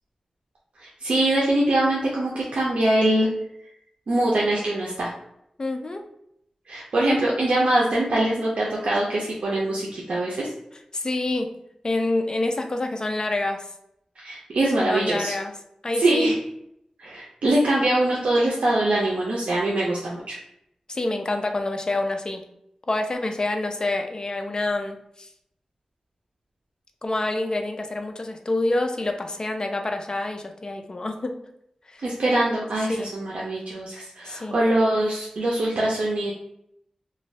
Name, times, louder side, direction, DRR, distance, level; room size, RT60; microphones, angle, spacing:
voice 1, 0.8-3.3 4.1-5.1 6.7-10.5 14.2-15.3 15.9-16.4 17.0-20.3 32.0-36.3, right 1 dB, 80° right, -4 dB, 0.5 m, -23 dB
voice 2, 5.6-6.1 10.9-11.5 11.8-13.6 14.8-15.5 15.8-16.4 20.9-22.4 22.9-25.3 27.0-31.4 31.9-32.0 32.9-33.1 34.3-34.6, left 2 dB, 40° left, 5 dB, 0.4 m, -27 dB
2.5 x 2.3 x 3.1 m, 0.76 s
wide cardioid pair, 75°, 2 cm